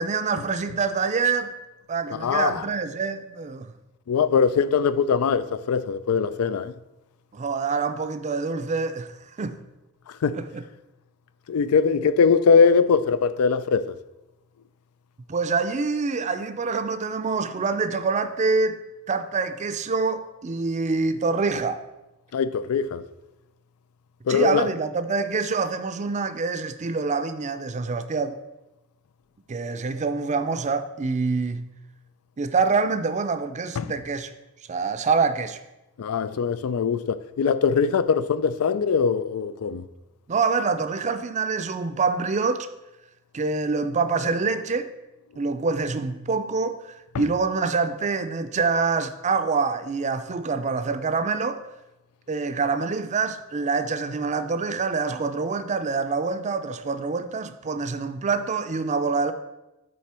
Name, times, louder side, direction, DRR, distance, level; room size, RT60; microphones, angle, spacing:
voice 1, 0.0-1.5 1.9-3.7 7.3-9.6 10.3-10.6 15.3-18.8 19.1-21.8 24.3-28.4 29.5-31.6 32.4-34.3 34.7-35.6 40.3-42.7 43.3-44.9 45.4-51.6 52.3-59.3, right 4 dB, 35° right, 0.4 m, -26 dB
voice 2, 2.1-2.6 4.1-6.7 10.2-10.4 11.5-13.8 22.3-23.0 24.3-24.7 33.8-33.9 36.0-39.8 47.1-47.2, left 6 dB, 85° left, 0.4 m, -21 dB
9.4 x 4.1 x 4.3 m
head